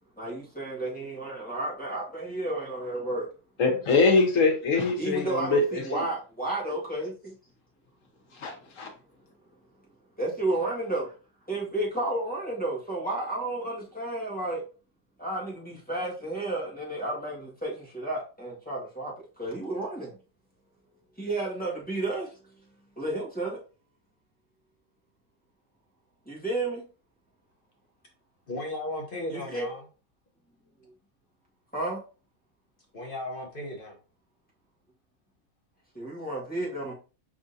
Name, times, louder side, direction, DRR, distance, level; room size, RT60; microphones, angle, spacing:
voice 1, 0.2-3.2 5.0-7.1 10.2-11.1 11.5-14.6 15.2-19.1 19.4-20.1 21.2-22.3 23.0-23.6 26.3-26.8 29.3-29.7 31.7-32.0 35.9-36.9, right 2 dB, 5° left, 1.6 m, -32 dB
voice 2, 3.6-5.8 8.4-8.9, left 3 dB, 75° left, 1.4 m, -23 dB
voice 3, 28.5-29.8 32.9-34.0, left 1 dB, 45° left, 1.1 m, -35 dB
5.0 x 3.6 x 2.7 m
omnidirectional pair, 1.4 m